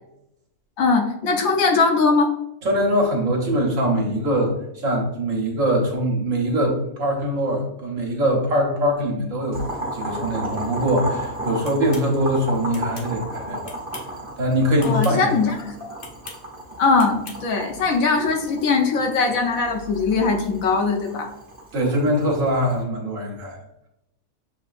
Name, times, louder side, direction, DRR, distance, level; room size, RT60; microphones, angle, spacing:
voice 1, 0.8-2.3 14.8-15.5 15.8-16.0 16.8-21.3, left 4 dB, 70° left, 2 dB, 1.1 m, -20 dB
voice 2, 2.6-9.6 9.9-13.6 14.4-15.2 21.7-23.6, equal, 60° right, 0 dB, 1.3 m, -22 dB
Boiling, 9.5-22.8, right 1 dB, 40° right, 1.1 m, -34 dB
sound 1, 11.6-12.1 12.7-13.1 13.6-14.2 14.8-15.2 16.0-16.4 17.0-17.4, left 3 dB, 45° left, 0.8 m, -40 dB
6.8 x 2.8 x 2.4 m, 0.82 s
omnidirectional pair, 1.6 m